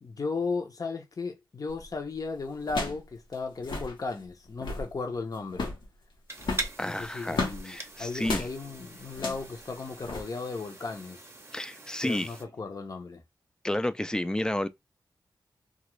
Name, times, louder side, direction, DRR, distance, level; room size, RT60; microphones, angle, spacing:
voice 1, 0.0-5.7 6.8-11.3 12.0-13.2, left 4 dB, 50° left, 0.7 m, -35 dB
sound 1, 1.7-1.9 2.6-3.1 3.3-3.4 3.6-3.9 4.4-4.9 5.5-5.9 6.4-7.6 8.2-8.5 9.1-9.5 10.0-10.2, left 3 dB, 80° left, 1.0 m, -33 dB
sound 2, 6.3-12.4, right 2 dB, 35° right, 0.6 m, -42 dB
voice 2, 6.8-8.5 11.5-12.3 13.6-14.7, left 1 dB, 10° left, 0.3 m, -31 dB
2.4 x 2.4 x 3.0 m
cardioid pair, 60°, 8 cm